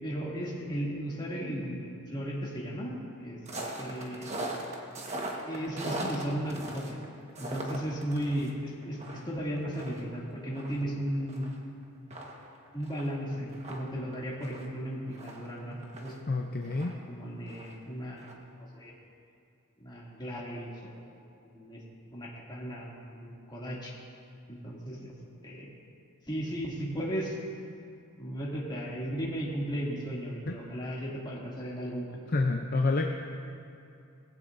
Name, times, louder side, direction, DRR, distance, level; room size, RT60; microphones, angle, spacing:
voice 1, 0.0-3.4 3.8-4.3 5.5-7.0 7.4-11.5 12.7-16.1 17.1-18.3 18.7-18.9 19.8-21.8 22.1-23.9 24.5-25.1 25.4-25.7 26.3-27.4 28.2-32.2, equal, 20° left, -5 dB, 2.6 m, -35 dB
sound 1, 3.5-8.5 8.8-11.5 11.8-11.9 12.1-16.2 16.6-17.9 18.2-18.3, right 1 dB, 30° right, 1.4 m, -40 dB
voice 2, 16.3-16.9 30.5-30.6 32.3-33.1, left 3 dB, 40° left, 2 dB, 0.6 m, -28 dB
20.0 x 15.5 x 2.7 m, 2.6 s
head